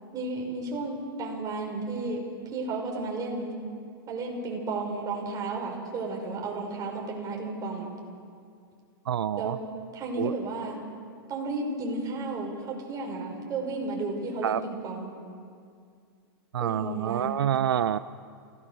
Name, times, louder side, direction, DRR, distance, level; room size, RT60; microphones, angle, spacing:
voice 1, 0.1-2.2 2.5-3.6 4.1-7.9 9.4-9.6 9.9-10.8 11.3-15.2 16.6-17.3, right 3 dB, 30° right, 0 dB, 5.7 m, -33 dB
voice 2, 9.1-9.6 10.2-10.3 14.4-14.6 16.5-18.0, right 10 dB, 85° right, 14 dB, 0.6 m, -27 dB
27.5 x 18.0 x 6.5 m, 2.2 s
hypercardioid pair, 120°, 12 cm